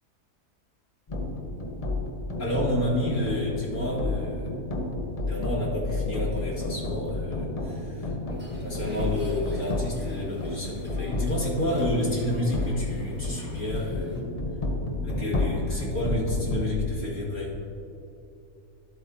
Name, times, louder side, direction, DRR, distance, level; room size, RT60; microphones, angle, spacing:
sound 1, 1.1-16.7, left 2 dB, 35° left, 0.6 m, -31 dB
voice 1, 2.4-4.6 5.2-8.1 8.6-14.2 15.0-17.6, left 1 dB, 55° left, -6 dB, 2.4 m, -30 dB
sound 2, 8.3-14.2, right 2 dB, 10° right, 1.0 m, -47 dB
13.5 x 7.7 x 2.7 m, 2.8 s
omnidirectional pair, 1.6 m